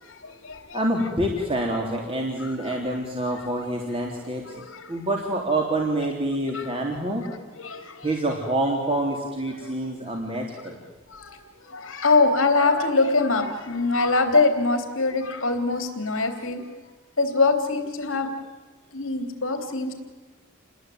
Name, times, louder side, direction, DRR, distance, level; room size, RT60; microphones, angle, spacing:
voice 1, 0.0-0.8 4.5-5.0 6.5-6.7 7.6-8.1 9.6-9.7 11.1-16.6 17.2-18.3 18.9-19.9, left 3 dB, 65° left, 6 dB, 3.3 m, -24 dB
voice 2, 0.7-4.6 4.9-7.2 8.0-10.8, right 1 dB, 25° right, 0 dB, 3.5 m, -27 dB
29.0 x 20.5 x 9.4 m, 1.3 s
head